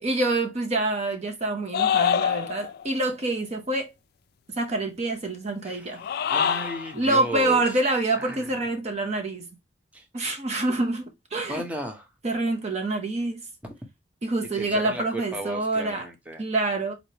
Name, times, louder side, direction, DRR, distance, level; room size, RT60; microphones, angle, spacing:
voice 1, 0.0-3.9 4.6-6.0 6.9-9.5 10.1-11.6 12.2-13.4 14.2-16.1 16.4-16.9, right 2 dB, 35° right, 0.8 m, -26 dB
sound 1, 1.7-2.8 5.9-6.9, left 8 dB, 55° left, 0.3 m, -24 dB
voice 2, 5.6-7.8 8.2-8.5 9.9-10.0 11.5-12.1 13.6-13.7 14.6-16.4, right 1 dB, 10° right, 0.8 m, -35 dB
4.1 x 3.2 x 2.8 m
head